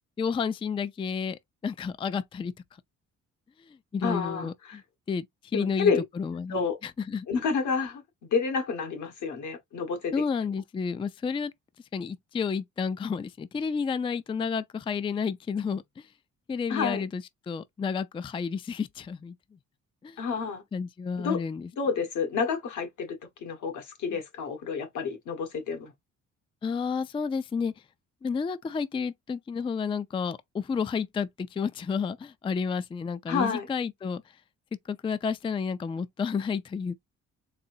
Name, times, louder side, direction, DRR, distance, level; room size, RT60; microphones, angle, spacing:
voice 1, 0.2-2.5 3.9-4.8 5.1-5.3 5.5-7.3 10.1-11.5 11.9-16.1 16.5-19.3 20.0-20.2 20.7-21.7 26.6-27.7 28.2-34.2 34.9-36.9, left 5 dB, 20° left, 0.3 m, -31 dB
voice 2, 4.0-4.8 5.5-6.0 6.5-6.8 7.3-8.0 8.3-10.1 16.7-17.0 20.2-20.6 21.2-21.4 21.8-25.9 33.3-33.7, left 5 dB, 75° left, 1.7 m, -29 dB
4.1 x 3.6 x 2.7 m
cardioid pair, 90°, 30 cm